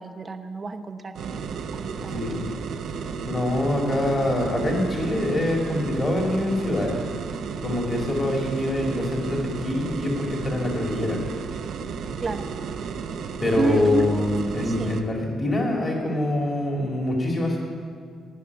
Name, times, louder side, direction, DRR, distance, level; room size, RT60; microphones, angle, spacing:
voice 1, 0.0-2.4 12.2-12.5 13.6-14.0 14.6-14.9, right 3 dB, 35° right, 6 dB, 1.0 m, -30 dB
sound 1, 1.1-15.0, right 6 dB, 70° right, 0.9 m, -33 dB
voice 2, 2.1-2.5 3.2-7.0 7.6-11.2 13.4-17.6, left 1 dB, 30° left, 0 dB, 2.5 m, -25 dB
16.0 x 5.8 x 9.7 m, 2.1 s
cardioid pair, 90°, 0 cm